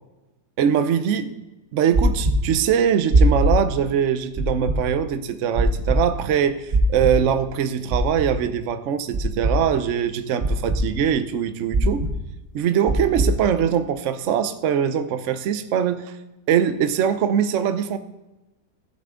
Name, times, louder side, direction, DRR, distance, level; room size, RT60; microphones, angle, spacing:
voice 1, 0.6-1.3 1.7-12.0 12.5-16.1 16.5-18.0, right 8 dB, 80° right, 10 dB, 0.6 m, -22 dB
sound 1, 1.9-2.3 3.1-3.5 4.4-4.8 5.5-5.9 6.7-7.1 7.9-8.3 9.1-9.5 10.4-10.8 11.7-12.1 12.9-13.3, right 3 dB, 30° right, 1.0 m, -20 dB
15.5 x 6.0 x 3.7 m, 1.1 s
omnidirectional pair, 2.1 m